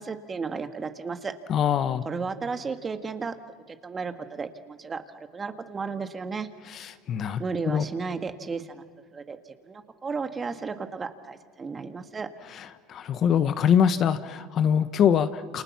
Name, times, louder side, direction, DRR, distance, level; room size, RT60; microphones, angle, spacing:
voice 1, 0.0-1.3 2.1-3.4 3.7-6.5 7.4-8.8 9.1-9.4 9.6-12.3, right 5 dB, 25° right, 8 dB, 1.8 m, -34 dB
voice 2, 1.5-2.0 6.7-7.8 12.6-15.6, left 8 dB, 45° left, 11 dB, 1.2 m, -24 dB
28.5 x 28.5 x 6.0 m, 1.5 s
supercardioid pair, 95°, 0 cm